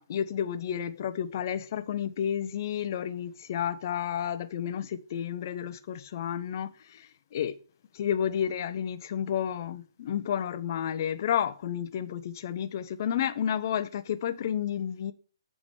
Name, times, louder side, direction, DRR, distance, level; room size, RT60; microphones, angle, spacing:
voice 1, 0.0-7.5 7.9-15.1, left 9 dB, 45° left, 0.8 m, -31 dB
7.4 x 4.9 x 6.3 m
figure-of-eight pair, 130°, 2 cm